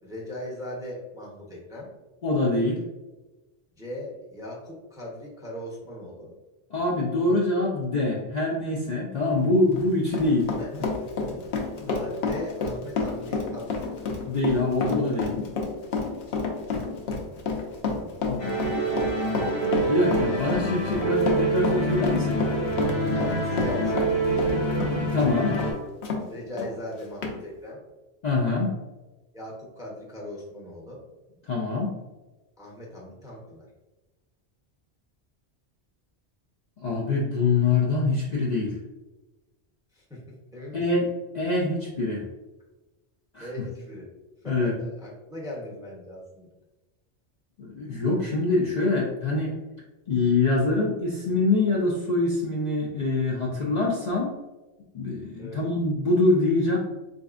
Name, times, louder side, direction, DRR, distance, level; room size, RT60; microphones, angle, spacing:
voice 1, 0.0-1.9 3.7-6.3 10.6-11.0 11.4-11.6 11.9-14.0 17.9-19.3 23.0-24.4 26.3-27.8 29.3-31.0 32.6-33.6 39.9-40.8 43.4-44.1 44.4-46.5 55.4-55.6, left 1 dB, 5° right, -4 dB, 0.6 m, -39 dB
voice 2, 2.2-2.8 6.7-10.5 11.3-11.4 11.8-11.9 14.3-15.4 18.3-18.4 19.9-22.4 24.9-25.6 28.2-28.8 31.5-32.0 36.8-38.8 40.7-41.1 41.3-42.2 43.3-43.5 44.5-44.7 47.6-49.5 50.1-54.3 54.9-56.8, left 2 dB, 50° left, -3 dB, 0.5 m, -24 dB
Run, 9.6-26.2 26.6-26.7 27.2-27.4, left 4 dB, 70° left, 0.9 m, -29 dB
sound 1, 18.4-25.7, right 2 dB, 85° left, 1.2 m, -26 dB
4.0 x 2.6 x 2.4 m, 1.1 s
omnidirectional pair, 1.1 m